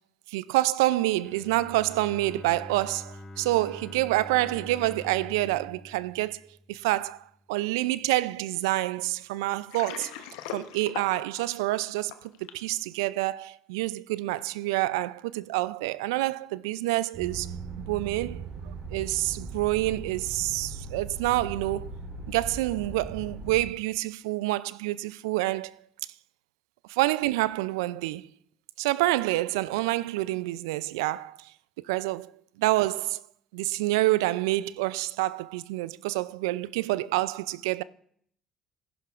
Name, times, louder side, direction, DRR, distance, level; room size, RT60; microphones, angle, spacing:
voice 1, 0.3-6.4 6.7-10.1 10.5-21.9 22.3-25.7 26.9-28.3 28.8-31.5 31.9-32.3 32.6-33.2 33.5-37.8, right 17 dB, 80° right, 0.3 m, -27 dB
Bowed string instrument, 1.2-7.2, left 1 dB, 30° left, 1.2 m, -45 dB
Water, 9.5-12.7, left 10 dB, 80° left, 0.8 m, -40 dB
sound 1, 17.1-23.6, right 3 dB, 60° right, 3.4 m, -39 dB
16.0 x 10.5 x 2.4 m
hypercardioid pair, 55°, 2 cm